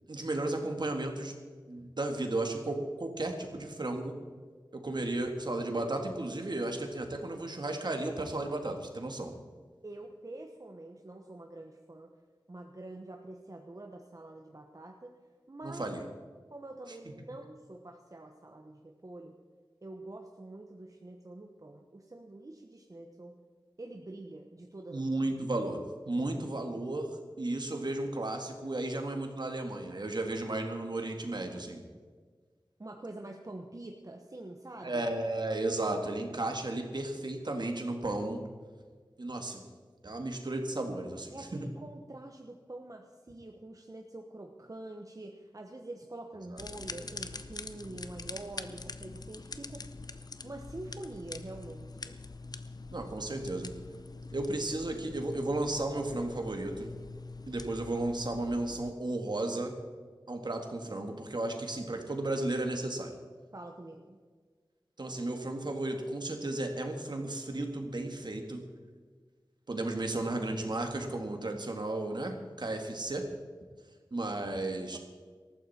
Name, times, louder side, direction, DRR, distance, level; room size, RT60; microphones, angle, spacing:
voice 1, 0.1-1.3 1.7-4.2 4.7-9.3 15.6-16.0 24.9-25.8 26.1-31.8 34.8-38.4 39.2-39.6 40.0-41.7 52.9-53.7 54.3-56.9 57.5-59.7 60.3-63.1 65.0-68.6 69.7-73.3 74.1-75.0, right 2 dB, 60° right, 4 dB, 2.1 m, -34 dB
voice 2, 9.8-12.1 12.5-15.1 15.5-15.8 16.5-19.4 19.8-23.3 23.8-25.1 32.8-35.0 41.3-49.9 50.4-52.2 63.5-64.2 74.8-75.0, right 2 dB, 45° right, 2 dB, 1.1 m, -46 dB
sound 1, 46.6-58.9, left 3 dB, 50° left, 0.7 m, -44 dB
19.0 x 14.0 x 4.4 m, 1.5 s
wide cardioid pair, 65°, 8 cm